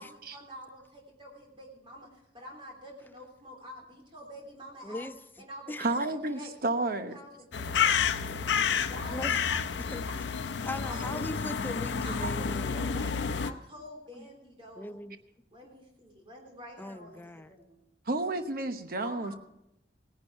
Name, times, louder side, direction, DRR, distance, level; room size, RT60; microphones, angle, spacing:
voice 1, 0.0-5.1 5.4-8.5 8.9-9.6 10.0-10.2 10.8-11.3 12.0-15.0 15.5-17.8 19.0-19.4, equal, 30° right, 3.2 m, -48 dB
voice 2, 4.8-5.2 5.7-5.9 8.4-8.7 9.1-10.2 10.6-12.8 14.1-14.3 14.8-15.2 16.8-17.5, left 1 dB, 10° left, 0.4 m, -40 dB
voice 3, 5.8-7.2 12.2-12.5 18.1-19.3, right 2 dB, 55° right, 1.0 m, -31 dB
sound 1, 7.5-13.5, left 6 dB, 90° left, 0.6 m, -30 dB
17.0 x 11.0 x 4.6 m
head